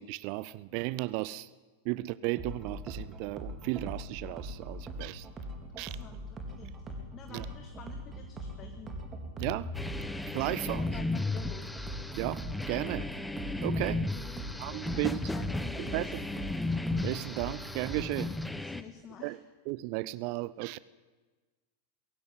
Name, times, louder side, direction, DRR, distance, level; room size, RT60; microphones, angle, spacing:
voice 1, 0.0-1.5 1.8-5.3 5.8-6.0 7.3-7.4 9.4-9.7 10.3-10.9 12.2-12.4 12.7-13.1 13.6-14.1 14.6-15.2 15.9-16.2 17.0-18.3 19.2-19.4 19.7-20.8, right 19 dB, 45° right, 0.6 m, -34 dB
sound 1, 2.4-18.4, equal, 20° right, 4.0 m, -41 dB
voice 2, 5.6-9.0 10.5-11.7 14.1-16.1 18.6-19.4, left 7 dB, 30° left, 2.1 m, -50 dB
sound 2, 9.7-18.8, left 2 dB, 5° left, 1.2 m, -35 dB
21.5 x 16.0 x 9.5 m
figure-of-eight pair, 90°, 0 cm